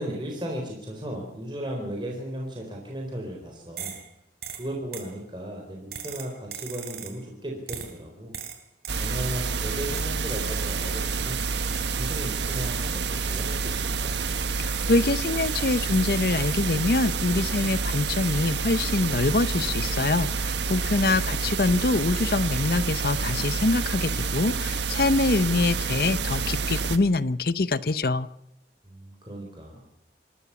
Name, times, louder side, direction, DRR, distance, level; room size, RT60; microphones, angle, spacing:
voice 1, 0.0-4.0 4.5-8.3 9.0-11.4 11.9-14.1 21.0-21.5 28.8-29.8, equal, 25° right, 0 dB, 4.1 m, -36 dB
sound 1, 3.8-4.1 4.4-5.1 5.9-7.2 7.7-8.0 8.3-9.5 9.9-12.3 12.6-13.0 13.3-15.1 15.4-17.3 17.6-17.9, right 8 dB, 60° right, 3.2 m, -41 dB
sound 2, 8.9-27.0, right 4 dB, 80° right, 1.4 m, -28 dB
voice 2, 14.6-28.3, left 3 dB, 55° left, 16 dB, 0.7 m, -24 dB
27.5 x 13.5 x 7.0 m, 0.82 s
head